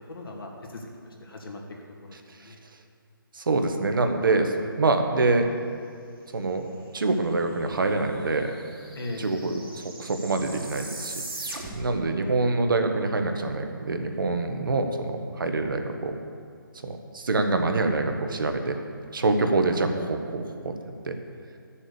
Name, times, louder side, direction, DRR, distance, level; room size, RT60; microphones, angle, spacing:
voice 1, 0.1-1.6 2.0-2.6 8.9-9.3, left 2 dB, 75° left, -1 dB, 2.6 m, -39 dB
voice 2, 3.3-5.6 6.3-6.7 6.9-8.6 9.2-11.1 11.7-16.2 16.8-18.8 19.1-20.5 21.0-21.2, right 3 dB, 65° right, 5 dB, 1.4 m, -25 dB
sound 1, 7.5-7.6 7.8-12.0, right 2 dB, 80° right, 3.2 m, -40 dB
11.5 x 7.3 x 7.0 m, 2.2 s
hypercardioid pair, 155°, 12 cm